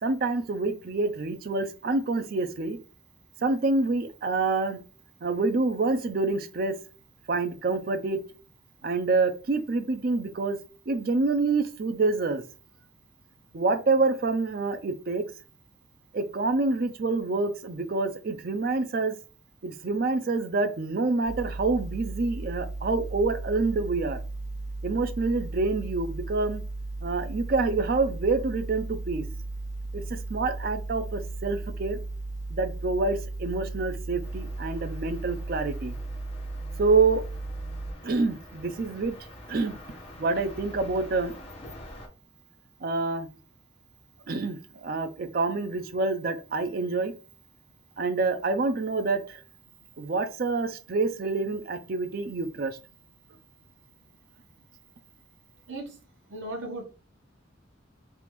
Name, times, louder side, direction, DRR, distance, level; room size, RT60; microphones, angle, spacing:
voice 1, 0.0-2.8 3.4-4.8 5.2-6.7 7.3-8.2 8.8-10.6 10.9-12.4 13.5-15.2 16.1-19.1 19.6-24.2 24.8-26.6 27.0-29.3 29.9-32.0 32.5-35.9 36.8-37.2 38.0-39.1 39.5-39.7 40.2-41.3 42.8-43.3 44.3-47.1 48.0-49.4 50.0-52.8, right 3 dB, 50° right, 0.4 m, -27 dB
sound 1, 21.2-37.9, right 2 dB, 80° left, 1.0 m, -36 dB
sound 2, 34.2-42.1, left 1 dB, 30° left, 0.8 m, -46 dB
voice 2, 56.3-56.8, right 2 dB, 75° right, 0.9 m, -36 dB
3.4 x 2.4 x 3.0 m
head